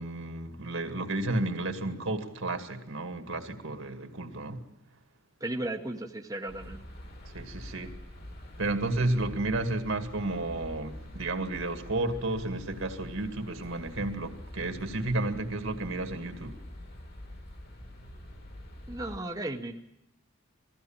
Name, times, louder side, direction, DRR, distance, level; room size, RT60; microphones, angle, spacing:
voice 1, 0.0-4.6 7.2-8.0 8.6-16.6, right 2 dB, 65° right, 2.2 m, -32 dB
voice 2, 5.4-6.8 18.9-19.8, right 1 dB, 15° right, 1.0 m, -35 dB
sound 1, 6.5-19.2, left 1 dB, 50° left, 2.6 m, -46 dB
21.0 x 15.5 x 8.8 m
head